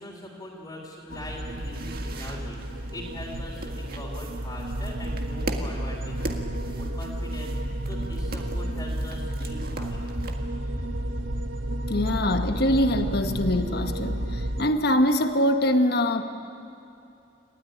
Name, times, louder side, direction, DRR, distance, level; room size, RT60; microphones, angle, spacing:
voice 1, 0.0-2.6 2.9-6.2 6.6-7.5 7.8-10.2, left 1 dB, 20° left, -3 dB, 3.3 m, -41 dB
sound 1, 1.1-10.3, right 2 dB, 50° right, 1.8 m, -41 dB
sound 2, 1.1-14.6, right 1 dB, 85° right, 1.4 m, -31 dB
voice 2, 11.9-16.2, left 1 dB, 55° left, 7 dB, 1.2 m, -23 dB
28.5 x 13.0 x 9.9 m, 2.8 s
head